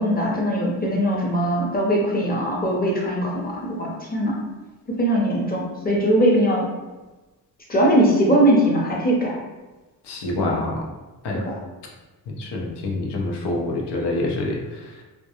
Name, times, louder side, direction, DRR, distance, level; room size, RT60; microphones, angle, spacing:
voice 1, 0.0-4.4 4.9-6.7 7.7-9.4 10.4-10.6 11.3-11.6, right 1 dB, 20° left, -2 dB, 0.7 m, -21 dB
voice 2, 10.1-10.7 11.2-11.4 12.3-14.6, left 2 dB, 70° left, -1 dB, 0.7 m, -26 dB
2.3 x 2.2 x 2.8 m, 1.1 s
cardioid pair, 80°, 42 cm